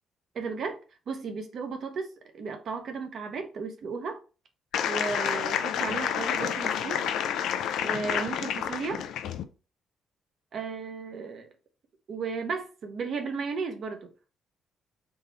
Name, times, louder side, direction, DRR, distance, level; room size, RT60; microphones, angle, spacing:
voice 1, 0.3-0.8 1.1-4.2 4.8-7.1 7.8-9.0 10.5-11.5 12.1-14.1, right 5 dB, 60° right, 0.9 m, -34 dB
sound 1, 4.7-9.4, left 9 dB, 80° left, 0.4 m, -29 dB
3.7 x 2.1 x 4.0 m
cardioid pair, 90°, 0 cm